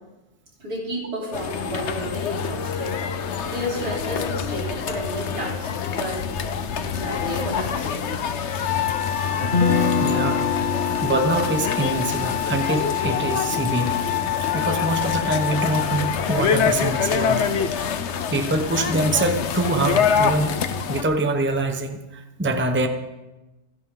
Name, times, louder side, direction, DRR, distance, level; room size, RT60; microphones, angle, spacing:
voice 1, 0.6-6.3 6.8-8.0, equal, 85° right, -4 dB, 4.7 m, -32 dB
sound 1, 1.3-21.0, left 6 dB, 55° left, 1.0 m, -26 dB
sound 2, 8.5-16.2, left 12 dB, 75° left, 1.4 m, -28 dB
Guitar, 9.4-15.5, left 5 dB, 35° left, 1.5 m, -27 dB
voice 2, 10.0-10.5 11.0-13.9 14.5-17.4 17.8-20.6 20.9-22.9, right 2 dB, 10° right, 5 dB, 0.9 m, -24 dB
26.5 x 10.5 x 3.9 m, 1.0 s
omnidirectional pair, 1.6 m